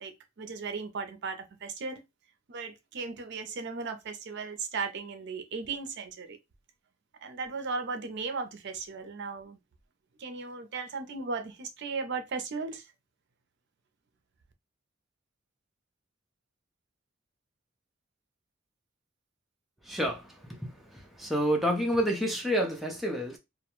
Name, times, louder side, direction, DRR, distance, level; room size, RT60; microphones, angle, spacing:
voice 1, 0.0-2.0 2.5-6.4 7.2-9.6 10.2-12.9, right 4 dB, 60° right, 0.5 m, -36 dB
voice 2, 19.9-23.4, equal, ahead, 0.4 m, -29 dB
2.4 x 2.1 x 2.9 m
head